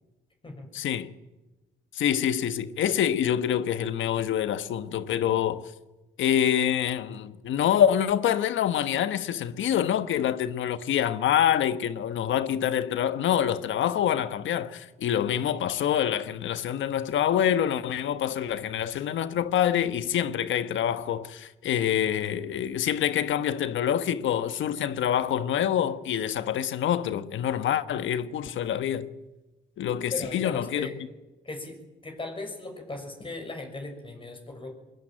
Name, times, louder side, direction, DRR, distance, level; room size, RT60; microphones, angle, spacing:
voice 1, 0.7-1.1 1.9-5.6 6.2-29.1 29.8-30.9, left 10 dB, 75° left, 1.3 m, -26 dB
voice 2, 30.1-31.0 31.4-34.7, left 2 dB, 25° left, 6.1 m, -38 dB
22.0 x 21.5 x 9.1 m
cardioid pair, 90°, 20 cm